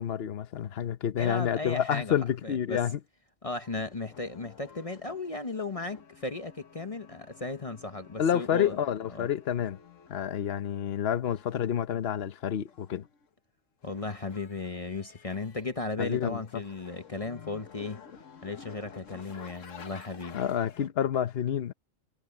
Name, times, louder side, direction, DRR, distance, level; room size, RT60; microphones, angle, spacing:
voice 1, 0.0-3.0 8.2-9.8 10.1-13.1 16.0-16.6 20.3-21.7, left 9 dB, 55° left, 1.0 m, -29 dB
voice 2, 1.2-2.1 2.4-2.8 3.4-8.8 9.1-9.3 13.8-18.0 18.4-20.4, left 3 dB, 30° left, 0.9 m, -36 dB
sound 1, 3.6-10.2 11.2-13.3 13.8-15.8 16.1-20.9, left 6 dB, 70° left, 1.6 m, -52 dB
omnidirectional pair, 1.4 m